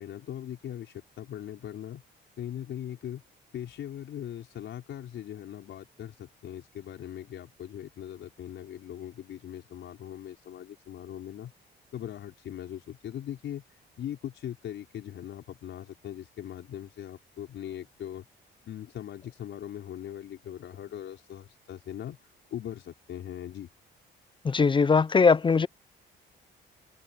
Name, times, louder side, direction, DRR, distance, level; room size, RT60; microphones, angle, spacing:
voice 1, 0.0-2.0 2.4-3.2 3.5-11.5 11.9-13.6 14.0-18.3 18.6-22.2 22.5-23.7, left 10 dB, 70° left, 5.0 m, -40 dB
voice 2, 24.5-25.7, left 5 dB, 25° left, 0.5 m, -20 dB
open air
cardioid pair, 90°, 20 cm